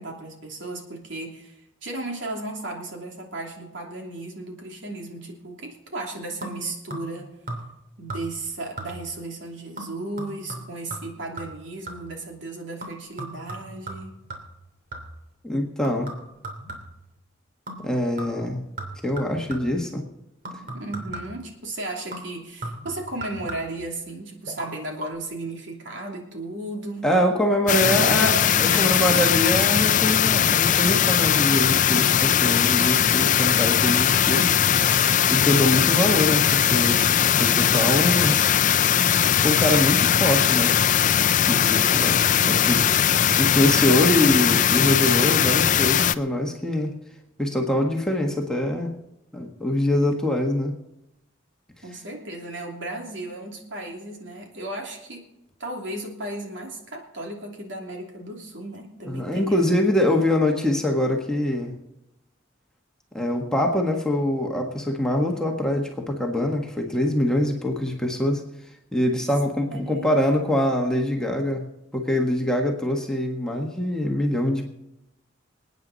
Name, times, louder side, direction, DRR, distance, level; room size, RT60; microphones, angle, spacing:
voice 1, 0.0-7.3 8.0-14.1 20.7-27.1 27.9-28.4 28.7-29.2 42.4-43.2 51.8-55.2 55.6-59.6 69.7-70.5, right 2 dB, 65° right, 1 dB, 2.9 m, -35 dB
sound 1, 6.4-7.2 7.5-7.8 8.1-8.5 8.8-9.2 9.8-12.2 12.8-15.3 15.8-17.1 17.7-17.9 18.2-19.8 20.5-21.5 22.1-23.9 24.5-24.7 25.0-25.1, right 2 dB, 45° right, 3.0 m, -37 dB
voice 2, 15.4-16.1 17.8-18.6 19.0-20.0 27.0-28.3 28.6-34.5 35.3-38.4 39.4-40.8 41.5-42.8 43.4-47.0 47.4-48.9 49.3-50.8 59.1-61.7 63.1-68.4 68.9-71.6 71.9-74.7, left 1 dB, 5° left, 1 dB, 1.6 m, -24 dB
sound 2, 27.7-46.2, left 9 dB, 40° left, 0.4 m, -20 dB
27.0 x 9.3 x 4.1 m, 0.88 s
head